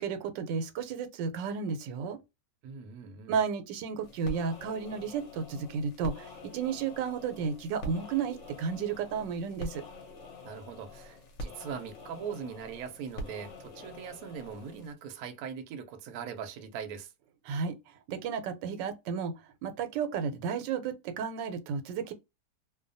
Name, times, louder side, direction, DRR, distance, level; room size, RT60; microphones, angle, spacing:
voice 1, 0.0-2.2 3.3-9.8 17.5-19.3 19.6-22.1, right 6 dB, 85° right, 1.3 m, -33 dB
voice 2, 2.6-3.4 10.4-17.1, right 7 dB, 70° right, 1.0 m, -41 dB
sound 1, 4.0-14.9, left 1 dB, 55° left, 0.9 m, -45 dB
2.7 x 2.2 x 2.5 m
omnidirectional pair, 1.9 m